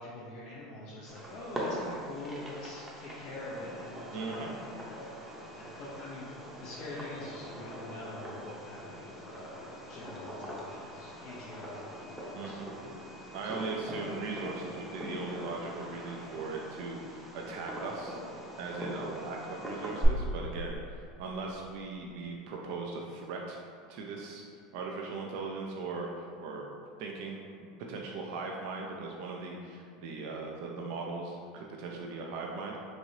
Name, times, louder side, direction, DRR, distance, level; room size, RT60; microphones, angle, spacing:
voice 1, 0.0-4.5 5.0-5.2 5.5-6.3 6.6-11.8 12.1-12.6 13.4-13.6, left 2 dB, 50° left, -7 dB, 0.5 m, -45 dB
Fireworks, 1.1-20.1, equal, 10° right, 0.7 m, -42 dB
voice 2, 4.1-4.5 12.3-12.7 13.3-18.2 18.6-23.6 23.9-24.4 24.7-26.6 27.0-27.4 27.9-32.8, right 3 dB, 65° right, -1 dB, 0.4 m, -39 dB
3.0 x 2.7 x 2.7 m, 2.3 s
hypercardioid pair, 100°, 2 cm